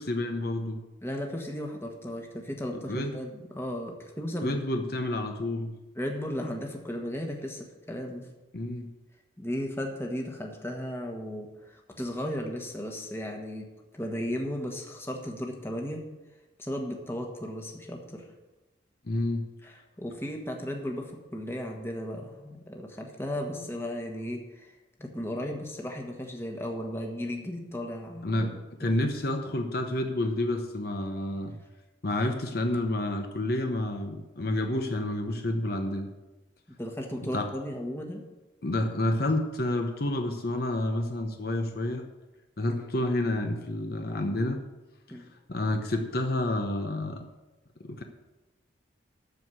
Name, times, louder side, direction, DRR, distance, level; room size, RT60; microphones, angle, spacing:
voice 1, 0.0-0.8 2.7-3.1 4.4-5.8 8.5-8.9 19.0-19.5 23.6-23.7 28.2-28.5 28.8-31.6 32.0-36.1 37.2-37.5 38.6-42.1 42.6-44.6 45.5-47.3 47.8-48.0, left 1 dB, 55° left, 4 dB, 0.9 m, -29 dB
voice 2, 1.0-4.6 6.0-8.3 9.4-13.7 13.9-16.0 16.6-18.3 19.6-24.7 25.0-28.5 28.8-29.0 36.8-38.2 45.1-45.3, equal, 15° left, 2 dB, 1.3 m, -35 dB
13.5 x 4.7 x 8.1 m, 1.1 s
head